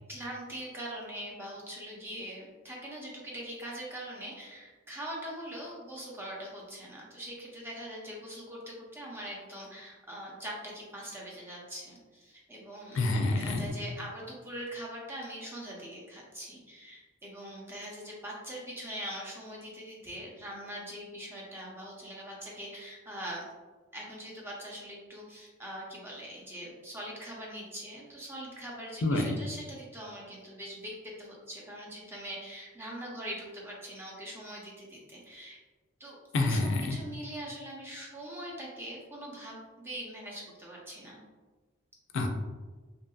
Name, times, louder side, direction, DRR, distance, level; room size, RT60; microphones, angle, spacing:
voice 1, 0.1-13.0 13.3-23.4 23.9-35.6 36.0-36.2 36.5-41.2, equal, 10° right, -4 dB, 0.5 m, -42 dB
voice 2, 12.9-13.8 29.0-29.3 36.3-37.0 42.1-42.3, left 2 dB, 60° left, 3 dB, 0.4 m, -27 dB
2.7 x 2.5 x 2.3 m, 1.4 s
head